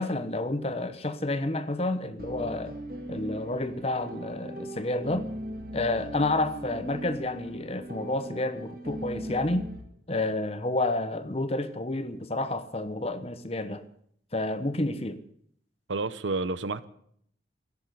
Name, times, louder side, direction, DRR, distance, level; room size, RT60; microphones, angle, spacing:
voice 1, 0.0-2.8 3.1-5.3 5.7-9.7 10.1-13.8 14.3-15.2, left 2 dB, 35° left, 1.1 m, -30 dB
sound 1, 2.2-9.8, equal, 50° right, 2.2 m, -39 dB
voice 2, 15.9-16.8, right 3 dB, 90° right, 0.9 m, -30 dB
13.0 x 11.0 x 9.3 m
head